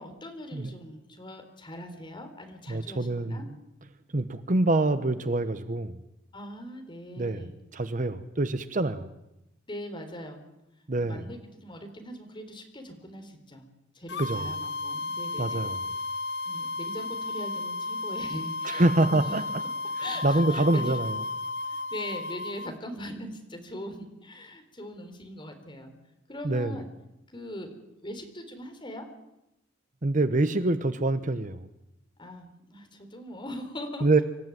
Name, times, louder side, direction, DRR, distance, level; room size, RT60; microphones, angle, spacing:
voice 1, 0.0-3.5 6.3-7.5 9.7-10.4 11.0-13.6 13.9-15.7 16.5-19.3 20.0-21.0 21.7-25.9 26.3-26.9 27.3-27.7 28.0-29.1 32.2-34.2, left 1 dB, 25° left, 5 dB, 3.8 m, -41 dB
voice 2, 2.7-3.5 4.1-6.0 7.2-7.5 7.7-9.1 10.9-11.2 14.2-14.5 15.4-15.8 18.6-19.6 20.0-21.2 26.4-26.8 30.0-31.7 34.0-34.2, right 2 dB, 40° right, 12 dB, 1.0 m, -26 dB
sound 1, 14.1-22.7, left 2 dB, 60° left, 0.8 m, -33 dB
25.5 x 14.5 x 9.4 m, 0.91 s
head